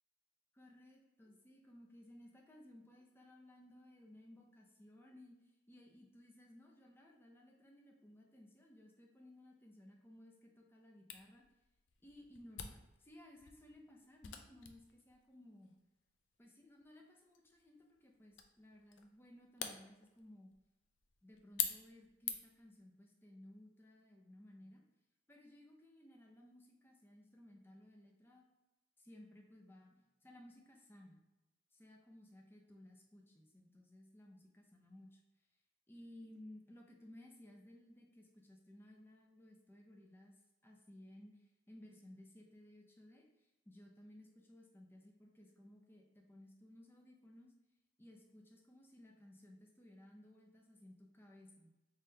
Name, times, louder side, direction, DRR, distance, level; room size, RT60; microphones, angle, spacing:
voice 1, 0.5-11.4 12.0-15.7 16.4-20.5 21.2-24.8 25.3-28.4 29.0-31.2 31.7-35.2 35.9-40.3 40.6-47.5 48.0-51.7, left 1 dB, 10° left, 0 dB, 0.5 m, -59 dB
Camera, 11.1-22.7, left 8 dB, 90° left, 0.4 m, -47 dB
3.7 x 3.2 x 2.8 m, 0.97 s
head